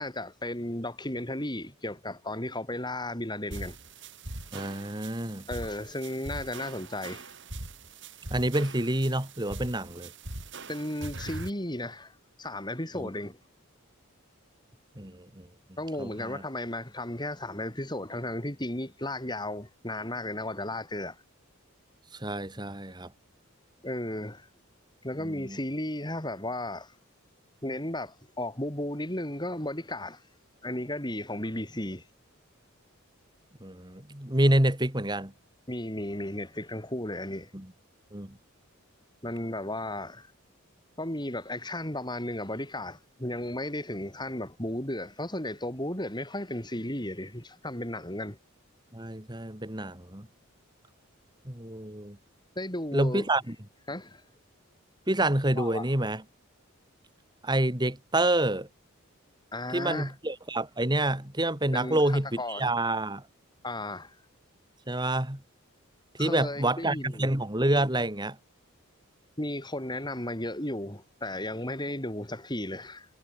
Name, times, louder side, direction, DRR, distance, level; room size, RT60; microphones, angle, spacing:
voice 1, 0.0-3.8 5.5-7.3 10.7-13.4 15.8-21.2 23.8-24.5 25.0-26.9 27.6-30.2 30.6-32.0 35.7-37.5 39.2-40.3 41.0-48.4 52.6-53.3 53.9-54.2 55.5-55.9 59.5-60.1 61.7-62.7 63.6-64.2 66.2-67.3 69.4-73.1, left 1 dB, 20° left, 7.4 m, -34 dB
sound 1, 3.5-11.5, right 2 dB, 60° right, 7.9 m, -42 dB
voice 2, 4.5-5.4 8.3-10.1 13.0-13.1 15.0-15.5 16.0-16.4 22.2-23.1 25.2-25.6 33.6-35.3 37.5-37.7 38.1-38.4 48.9-50.3 51.5-52.2 52.9-53.6 55.1-56.2 57.4-58.7 59.7-63.2 64.9-65.4 66.2-68.4, right 1 dB, 20° right, 2.6 m, -28 dB
head